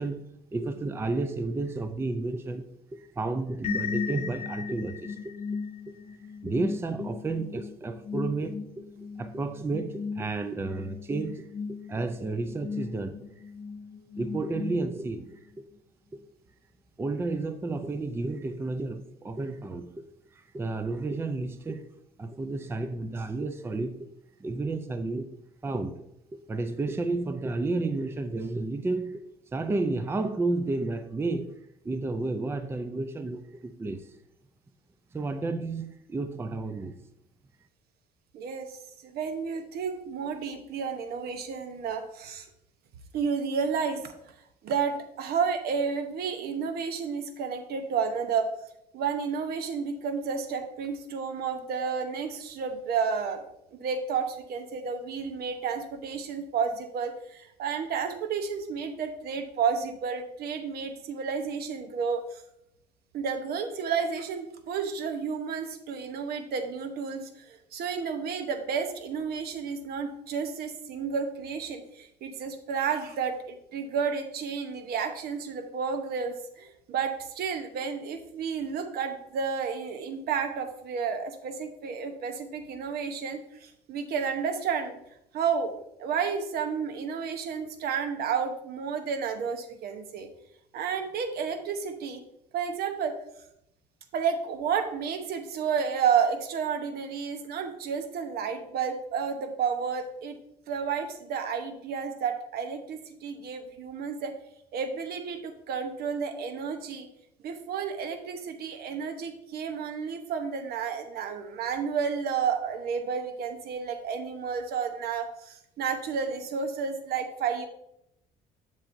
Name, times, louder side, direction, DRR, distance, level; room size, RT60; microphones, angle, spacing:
voice 1, 0.0-5.3 6.4-8.8 9.2-13.2 14.2-15.6 17.0-20.0 20.3-21.9 22.2-24.1 24.4-25.3 25.6-26.1 26.3-29.2 29.5-31.5 31.8-34.1 35.1-37.0, right 3 dB, 15° right, 0.4 m, -32 dB
sound 1, 3.6-15.3, left 5 dB, 35° left, 0.7 m, -37 dB
voice 2, 38.3-38.8 39.0-42.5 43.1-44.1 44.6-48.5 48.9-53.4 53.7-62.4 63.1-85.0 85.3-85.7 86.0-90.3 90.7-92.2 92.5-93.1 94.1-100.4 100.7-104.3 104.7-107.1 107.4-117.7, right 6 dB, 65° right, 1.0 m, -31 dB
7.4 x 7.4 x 2.6 m
cardioid pair, 110°, 17 cm